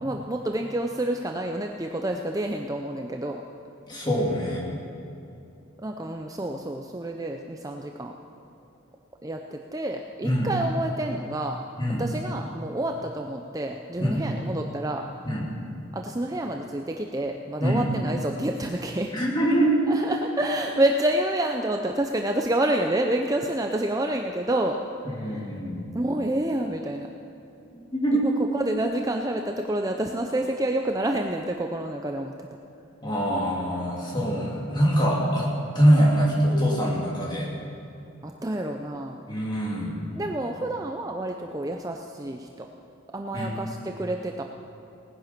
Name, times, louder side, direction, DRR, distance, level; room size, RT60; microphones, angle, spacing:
voice 1, 0.0-3.4 5.8-8.1 9.2-11.6 12.0-15.0 15.9-19.1 19.9-24.8 25.1-25.5 25.9-27.1 28.2-32.3 35.0-35.1 38.2-39.2 40.2-42.7 43.1-44.4, right 1 dB, 15° right, 3 dB, 0.5 m, -28 dB
voice 2, 3.9-4.6 10.2-10.5 11.8-12.0 14.0-14.2 15.3-15.5 17.6-17.8 19.1-19.8 25.1-25.9 27.7-28.2 33.0-37.5 39.3-39.9 43.3-43.6, equal, 20° left, -4 dB, 2.8 m, -24 dB
18.5 x 10.0 x 6.0 m, 2.8 s
head